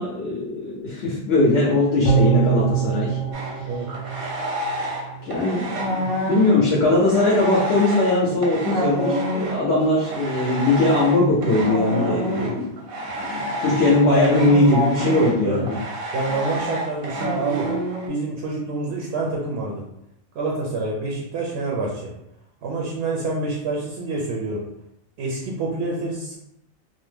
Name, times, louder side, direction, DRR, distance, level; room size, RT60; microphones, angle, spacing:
voice 1, 0.0-3.2 5.2-12.7 13.2-15.8, left 2 dB, 60° left, -5 dB, 0.8 m, -20 dB
sound 1, 2.0-5.4 5.7-5.8, right 8 dB, 85° left, 1.1 m, -24 dB
sound 2, 3.3-5.0 5.3-18.1, right 1 dB, 90° right, 1.1 m, -28 dB
voice 2, 16.1-17.7 18.1-19.9 20.3-22.1 22.6-24.6 25.2-26.4, right 2 dB, 65° right, -2 dB, 0.7 m, -27 dB
2.7 x 2.0 x 3.2 m, 0.81 s
omnidirectional pair, 1.4 m